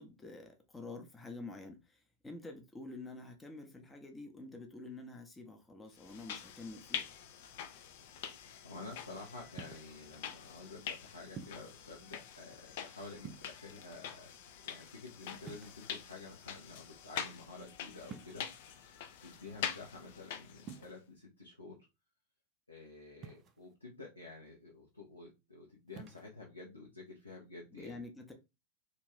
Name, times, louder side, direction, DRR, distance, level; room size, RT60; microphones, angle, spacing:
voice 1, 0.0-1.8 2.2-7.1 27.8-28.3, left 2 dB, 10° left, 0.7 m, -48 dB
sound 1, 6.0-20.9, left 8 dB, 50° left, 0.4 m, -45 dB
voice 2, 8.6-21.8 22.7-28.1, left 3 dB, 85° left, 0.8 m, -50 dB
sound 2, 9.6-10.0 11.4-11.8 13.2-13.8 15.4-16.2 18.1-18.6 20.6-20.9 23.2-23.7 25.9-26.3, right 6 dB, 30° right, 0.4 m, -50 dB
2.6 x 2.6 x 3.3 m
figure-of-eight pair, 90°, 0 cm